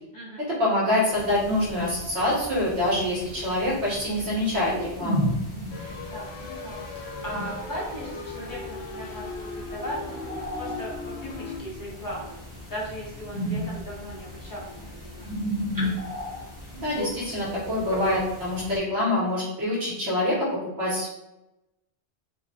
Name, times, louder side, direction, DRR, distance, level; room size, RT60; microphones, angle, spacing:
voice 1, 0.4-5.3 16.8-21.2, left 1 dB, 65° right, -6 dB, 1.0 m, -26 dB
sound 1, 1.1-18.8, equal, 20° right, 0.7 m, -35 dB
sound 2, 5.7-11.6, left 4 dB, 75° left, 0.8 m, -38 dB
voice 2, 6.1-12.3 12.7-15.4, equal, 25° left, -5 dB, 0.4 m, -38 dB
2.4 x 2.0 x 2.6 m, 0.92 s
omnidirectional pair, 1.2 m